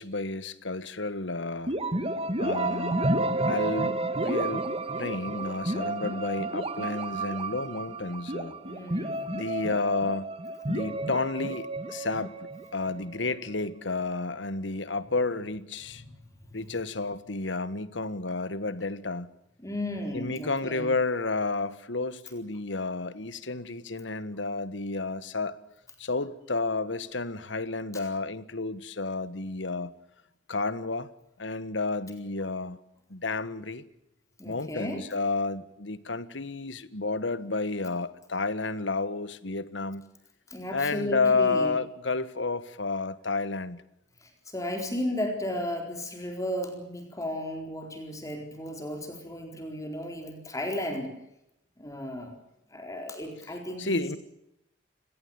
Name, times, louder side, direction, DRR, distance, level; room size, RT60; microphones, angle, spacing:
voice 1, 0.0-1.8 2.4-3.1 3.4-4.7 5.0-8.6 9.3-10.3 10.7-12.3 12.7-16.0 16.5-19.3 20.1-25.6 26.0-29.9 30.5-31.1 31.4-32.8 33.1-33.8 34.4-40.0 40.7-43.8 53.8-54.2, left 3 dB, 70° left, 1.5 m, -31 dB
sound 1, 1.7-13.4, right 2 dB, 30° right, 2.0 m, -31 dB
voice 2, 8.6-9.3 15.9-16.1 19.6-20.9 34.4-35.0 40.5-41.7 44.2-51.1 51.8-52.3 52.7-54.2, left 1 dB, 20° left, 4.2 m, -34 dB
30.0 x 17.5 x 7.2 m
head